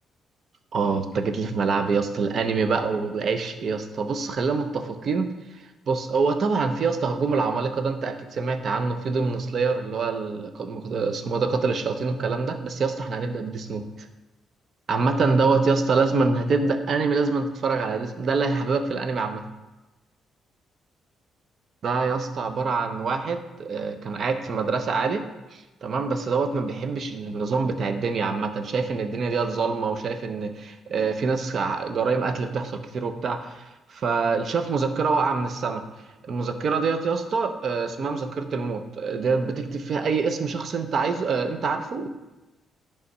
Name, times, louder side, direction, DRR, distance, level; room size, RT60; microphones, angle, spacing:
voice 1, 0.7-14.1 14.9-19.4 21.8-35.9 36.2-42.1, right 4 dB, 55° right, 8 dB, 0.7 m, -25 dB
9.9 x 3.5 x 5.5 m, 1.1 s
cardioid pair, 90°, 0 cm